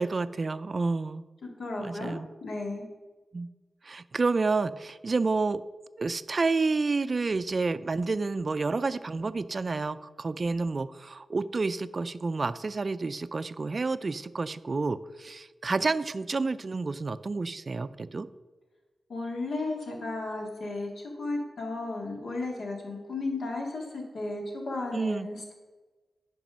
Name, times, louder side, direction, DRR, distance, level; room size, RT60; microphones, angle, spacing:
voice 1, 0.0-1.2 1.8-2.3 3.3-3.5 3.8-5.6 6.0-18.3 24.9-25.3, right 3 dB, 50° right, 14 dB, 0.4 m, -29 dB
voice 2, 1.4-2.1 2.4-2.9 19.1-20.9 21.2-25.5, left 2 dB, 80° left, 0 dB, 2.1 m, -34 dB
9.1 x 5.4 x 6.0 m, 1.3 s
cardioid pair, 65°, 0 cm